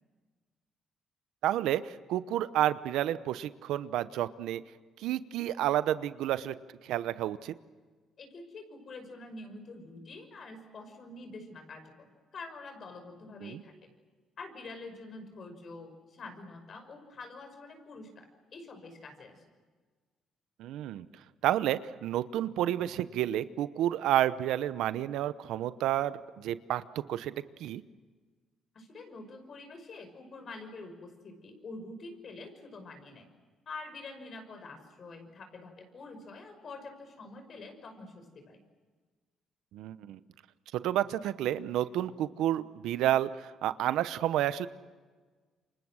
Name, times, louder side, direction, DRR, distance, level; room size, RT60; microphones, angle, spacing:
voice 1, 1.4-4.6 5.0-6.5 6.9-7.5 13.4-13.6 20.6-21.1 21.4-27.3 27.6-27.8 39.7-40.2 40.7-44.7, right 12 dB, 85° right, 14 dB, 0.9 m, -30 dB
voice 2, 8.2-13.9 14.4-19.4 28.7-33.3 33.7-38.6, left 3 dB, 50° left, 6 dB, 5.7 m, -46 dB
28.5 x 25.5 x 6.4 m, 1.4 s
cardioid pair, 95°, 0 cm